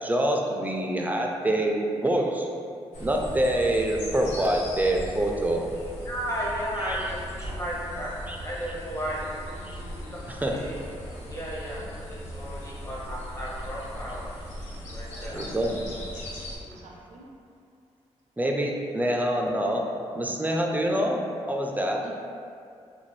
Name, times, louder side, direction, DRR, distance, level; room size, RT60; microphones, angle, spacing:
voice 1, 0.0-2.5 3.0-5.7 8.3-8.4 9.7-9.8 10.4-10.6 15.3-15.8 18.4-19.9 20.1-22.1, right 1 dB, 15° right, 0 dB, 0.4 m, -26 dB
sound 1, 2.9-16.6, equal, 80° left, 0.5 m, -39 dB
voice 2, 6.0-8.1 8.4-9.3 10.1-10.2 10.5-10.7 11.3-14.3 14.9-15.4, equal, 25° left, -6 dB, 0.9 m, -34 dB
voice 3, 15.0-15.6 15.9-16.0 16.5-17.3 22.0-22.1, right 3 dB, 75° right, -2 dB, 0.4 m, -47 dB
2.5 x 2.2 x 3.1 m, 2.3 s
supercardioid pair, 55°, 12 cm